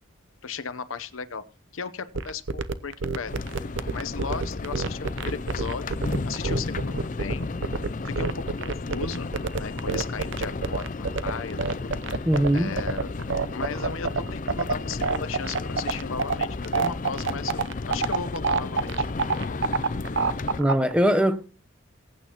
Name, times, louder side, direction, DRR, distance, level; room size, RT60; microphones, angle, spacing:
voice 1, 0.4-1.4 1.7-7.5 8.0-9.3 9.6-10.9 11.2-13.2 13.5-19.1, left 5 dB, 85° left, 0.9 m, -36 dB
sound 1, 2.1-20.9, right 4 dB, 65° right, 0.7 m, -26 dB
sound 2, 3.3-20.6, left 3 dB, 40° left, 0.5 m, -33 dB
voice 2, 12.2-12.7 20.6-21.5, equal, 5° right, 0.8 m, -21 dB
21.0 x 9.1 x 3.0 m
head